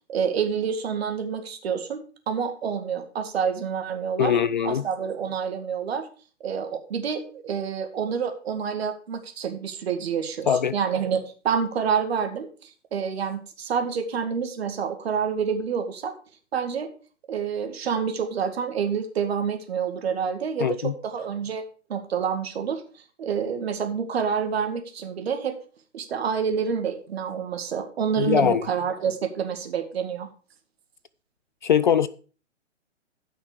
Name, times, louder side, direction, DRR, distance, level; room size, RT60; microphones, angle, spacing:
voice 1, 0.1-2.0 2.3-4.4 4.6-6.1 6.4-16.1 16.5-16.9 17.3-21.6 21.9-22.8 23.2-25.6 25.9-30.3, right 7 dB, 55° right, 2.1 m, -28 dB
voice 2, 4.2-4.9 10.5-10.8 20.6-20.9 28.2-28.7 31.6-32.1, left 8 dB, 40° left, 0.4 m, -21 dB
14.0 x 5.9 x 4.9 m
figure-of-eight pair, 130°, 38 cm